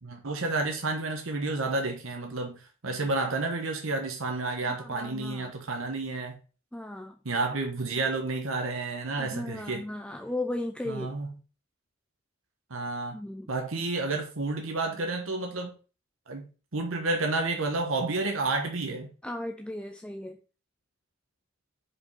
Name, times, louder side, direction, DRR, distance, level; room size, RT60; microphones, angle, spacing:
voice 1, 0.0-6.4 7.2-9.8 10.9-11.3 12.7-13.2 13.5-15.7 16.3-19.1, right 3 dB, 75° right, 1.2 m, -30 dB
voice 2, 4.7-5.5 6.7-7.2 9.2-11.2 13.1-13.5 19.2-20.4, left 1 dB, 5° left, 0.5 m, -36 dB
5.1 x 5.0 x 5.5 m
head